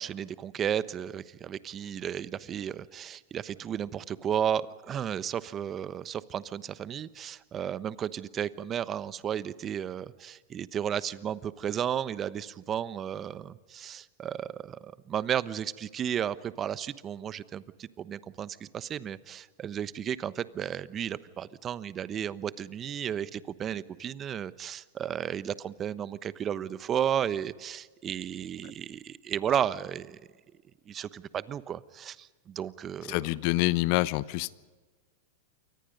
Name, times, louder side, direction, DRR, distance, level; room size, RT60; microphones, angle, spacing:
voice 1, 0.0-30.2 30.9-33.2, right 9 dB, 30° right, 16 dB, 1.0 m, -33 dB
voice 2, 33.1-34.5, left 19 dB, 55° left, 18 dB, 0.9 m, -26 dB
28.5 x 24.5 x 5.4 m, 1.4 s
hypercardioid pair, 105°, 0 cm